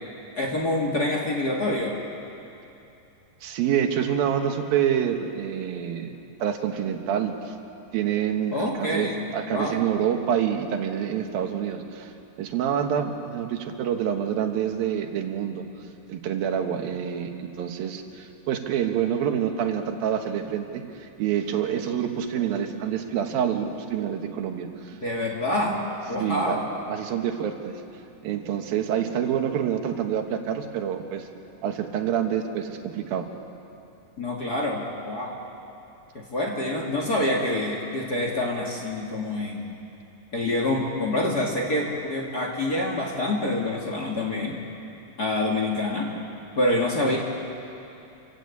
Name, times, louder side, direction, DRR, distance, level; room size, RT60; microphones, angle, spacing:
voice 1, 0.3-2.0 8.5-9.8 25.0-25.8 26.1-26.7 34.2-35.4 36.1-39.7 40.3-44.6 45.2-46.1 46.6-47.2, left 1 dB, 30° left, -1 dB, 2.1 m, -26 dB
voice 2, 3.4-7.6 7.9-15.6 16.1-25.0 26.2-26.6 26.9-27.8 28.2-31.3 31.6-33.3, right 9 dB, 85° right, 5 dB, 3.2 m, -27 dB
28.5 x 16.0 x 8.5 m, 2.8 s
omnidirectional pair, 4.1 m